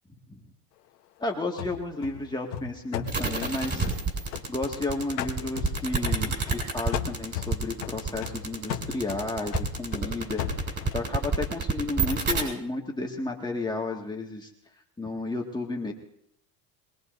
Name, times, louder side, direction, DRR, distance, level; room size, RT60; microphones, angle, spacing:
voice 1, 1.2-3.9 4.3-14.5 15.0-15.9, left 2 dB, 10° left, -1 dB, 1.9 m, -32 dB
sound 1, 1.6-4.8 5.2-6.7 6.9-11.1, left 10 dB, 90° left, 1.7 m, -36 dB
sound 2, 3.1-12.4, right 4 dB, 25° right, 7.3 m, -28 dB
24.0 x 20.5 x 2.7 m, 0.72 s
supercardioid pair, 115°, 44 cm